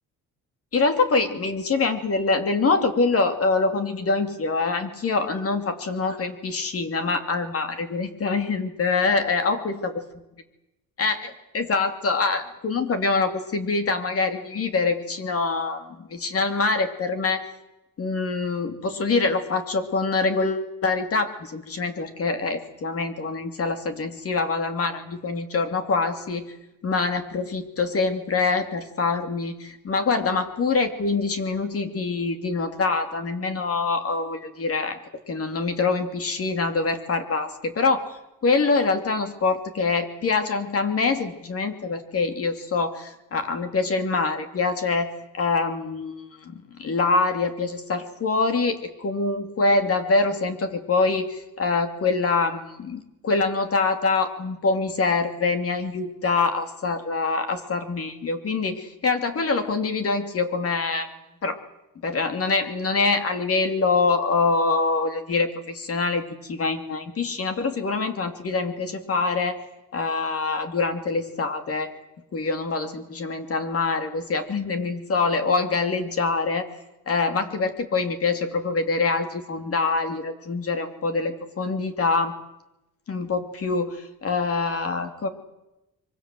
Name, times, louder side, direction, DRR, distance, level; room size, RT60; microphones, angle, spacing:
voice 1, 0.7-9.7 11.0-17.4 18.0-26.4 26.8-35.0 35.3-38.1 38.4-61.1 61.4-61.6 62.0-69.6 69.9-71.9 72.3-76.7 77.1-82.3 83.1-85.3, left 4 dB, 45° left, 8 dB, 2.9 m, -25 dB
25.5 x 24.0 x 7.7 m, 0.93 s
cardioid pair, 140°, 33 cm